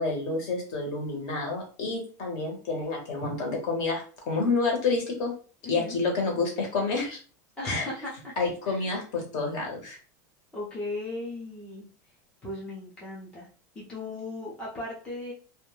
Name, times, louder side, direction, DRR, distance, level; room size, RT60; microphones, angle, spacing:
voice 1, 0.0-5.3 5.7-7.2 7.6-7.9 8.4-10.0, left 3 dB, 45° left, 1 dB, 0.9 m, -29 dB
voice 2, 5.6-6.0 7.6-8.3 8.7-9.0 10.5-11.9 12.4-13.5 13.7-15.3, left 2 dB, 10° left, -5 dB, 0.5 m, -37 dB
2.2 x 2.1 x 3.1 m, 0.38 s
supercardioid pair, 180°, 9 cm